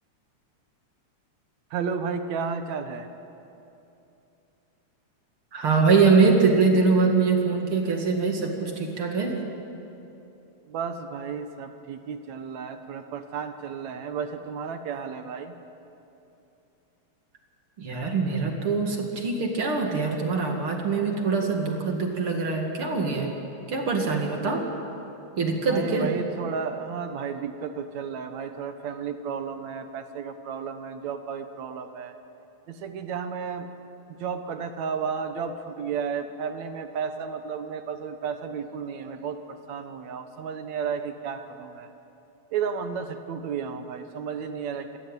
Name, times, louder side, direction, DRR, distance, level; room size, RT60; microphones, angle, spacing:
voice 1, 1.7-3.1 10.7-15.5 25.7-32.2 32.7-33.7 34.1-41.9 42.5-45.0, right 6 dB, 70° right, 8 dB, 2.3 m, -33 dB
voice 2, 5.5-9.4 17.8-23.3 23.7-24.6 25.4-26.1, right 4 dB, 50° right, 2 dB, 2.9 m, -23 dB
27.0 x 14.0 x 9.1 m, 2.8 s
omnidirectional pair, 3.3 m